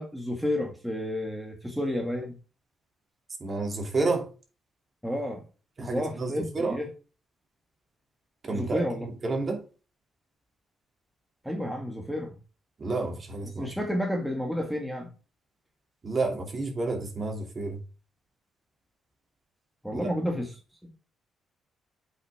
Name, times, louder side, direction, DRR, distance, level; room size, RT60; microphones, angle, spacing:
voice 1, 0.0-2.4 5.0-5.4 5.8-6.9 8.5-9.1 11.4-12.3 13.6-15.1 19.8-20.5 20.8-20.9, left 1 dB, ahead, 1.9 m, -31 dB
voice 2, 3.4-4.3 5.8-6.8 8.4-9.6 12.8-13.7 16.0-17.8 19.9-20.1, right 3 dB, 35° right, 2.9 m, -30 dB
8.0 x 5.9 x 3.5 m
cardioid pair, 90°, 0 cm